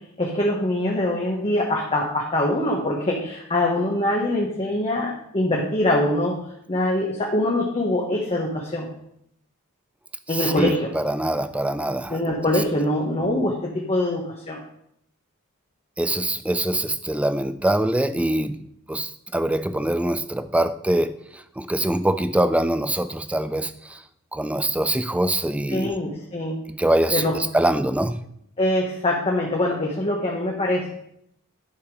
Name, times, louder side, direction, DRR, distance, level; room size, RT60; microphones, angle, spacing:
voice 1, 0.2-6.3 6.7-8.9 10.3-10.9 12.1-13.5 13.9-14.6 25.7-26.5 27.1-27.3 28.6-30.9, left 1 dB, 25° left, 1.2 m, -23 dB
voice 2, 10.3-12.2 12.5-12.6 16.0-24.0 24.3-25.9 26.7-28.2, right 1 dB, 5° right, 0.4 m, -24 dB
10.5 x 5.9 x 4.8 m
head